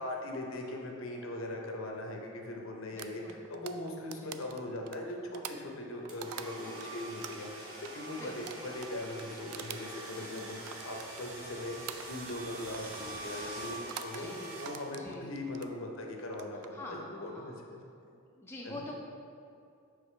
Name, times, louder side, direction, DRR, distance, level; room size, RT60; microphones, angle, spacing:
voice 1, 0.0-14.3 14.6-17.5 18.6-18.8, left 1 dB, 65° left, 1 dB, 0.7 m, -40 dB
sound 1, 2.5-13.5, equal, 25° right, 1.2 m, -59 dB
voice 2, 2.9-3.5 4.2-4.4 8.1-8.6 14.1-14.7 15.0-15.3 16.7-17.6 18.1-18.9, left 1 dB, 10° left, -3 dB, 0.4 m, -45 dB
sound 2, 3.0-6.9 7.2-11.5 11.9-12.5 12.7-13.1 13.7-14.2 14.6-15.7 16.3-16.7, right 9 dB, 85° right, 0.3 m, -45 dB
sound 3, 6.1-15.2, right 2 dB, 70° right, 0.8 m, -45 dB
6.0 x 4.9 x 3.3 m, 2.5 s
head